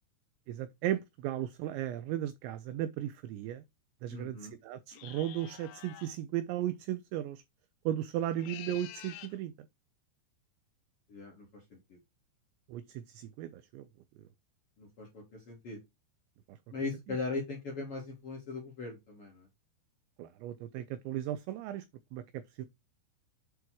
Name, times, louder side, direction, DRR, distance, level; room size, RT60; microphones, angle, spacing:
voice 1, 0.5-3.6 4.0-7.4 7.9-9.5 12.7-13.9 16.5-16.6 20.2-21.8 22.1-22.7, right 12 dB, 85° right, 2.5 m, -36 dB
voice 2, 4.1-4.5 11.1-12.0 14.8-15.8 16.7-19.5, left 3 dB, 45° left, 1.9 m, -39 dB
sound 1, 4.9-6.2 8.2-9.4, left 11 dB, 80° left, 2.7 m, -48 dB
8.2 x 3.7 x 4.6 m
omnidirectional pair, 5.8 m